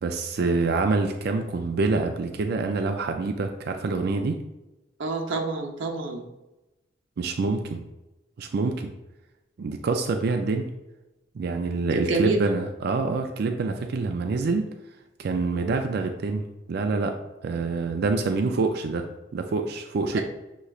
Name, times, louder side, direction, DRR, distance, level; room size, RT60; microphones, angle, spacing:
voice 1, 0.0-4.4 7.2-7.8 8.4-8.9 9.6-10.7 11.3-14.7 15.2-17.1 17.4-19.1 19.3-20.2, right 3 dB, 60° right, 5 dB, 0.4 m, -26 dB
voice 2, 5.0-6.2 11.9-12.4 20.1-20.2, right 3 dB, 85° right, 2 dB, 0.7 m, -27 dB
6.5 x 3.0 x 2.4 m, 0.98 s
head